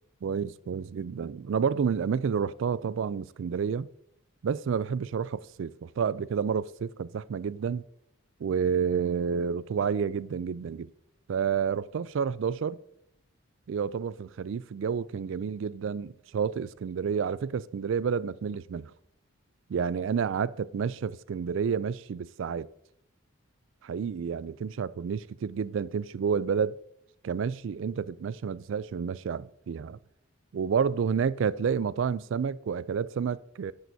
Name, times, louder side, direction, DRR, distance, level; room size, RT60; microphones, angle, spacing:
voice 1, 0.2-3.9 4.4-7.8 8.4-10.9 11.3-12.8 13.7-18.9 19.7-22.7 23.8-26.8 27.2-30.0 30.5-33.7, right 6 dB, 65° right, 0.3 m, -30 dB
11.0 x 10.5 x 2.7 m
head